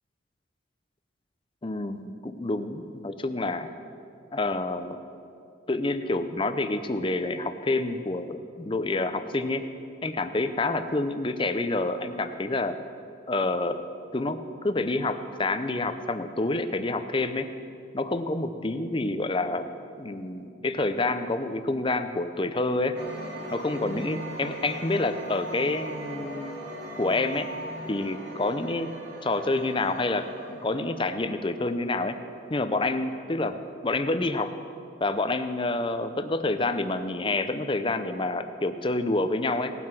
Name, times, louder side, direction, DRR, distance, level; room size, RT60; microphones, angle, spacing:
voice 1, 1.6-3.7 4.3-5.0 5.7-9.6 10.0-12.8 13.3-13.8 14.1-14.4 14.6-17.5 17.9-19.7 20.0-23.0 23.5-26.6 27.0-27.5 27.9-28.9 29.2-32.2 32.5-34.5 35.0-39.7, left 2 dB, 25° left, 10 dB, 0.5 m, -28 dB
sound 1, 23.0-32.6, equal, 65° right, 2.4 m, -39 dB
18.0 x 7.6 x 5.9 m, 2.5 s
head